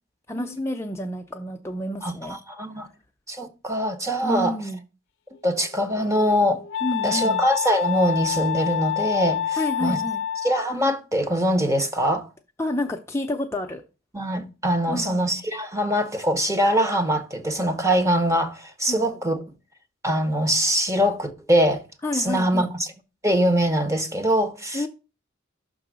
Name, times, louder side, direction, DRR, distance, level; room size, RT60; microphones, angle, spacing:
voice 1, 0.3-2.4 4.2-4.8 6.8-7.4 9.6-10.2 12.6-13.8 14.9-15.2 18.9-19.1 22.0-22.7 24.7-24.9, left 1 dB, 15° left, 0.5 m, -29 dB
voice 2, 2.0-2.9 3.3-4.6 5.4-6.6 7.0-10.0 10.4-12.3 14.1-19.4 20.0-21.8 22.1-22.9 23.2-24.8, equal, 15° right, 0.8 m, -23 dB
Wind instrument woodwind instrument, 5.3-10.8, left 9 dB, 65° left, 0.6 m, -28 dB
6.0 x 3.8 x 6.1 m
head